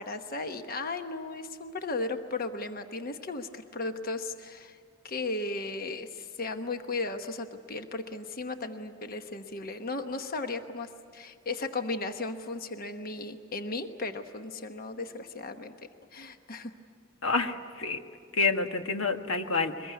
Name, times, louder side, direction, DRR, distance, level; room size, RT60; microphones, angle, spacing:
voice 1, 0.0-4.8 5.0-15.8 16.1-16.7, left 3 dB, 45° left, 7 dB, 1.1 m, -36 dB
voice 2, 17.2-18.0 18.3-19.9, left 4 dB, 90° left, 6 dB, 1.6 m, -28 dB
23.5 x 21.0 x 9.5 m, 2.2 s
head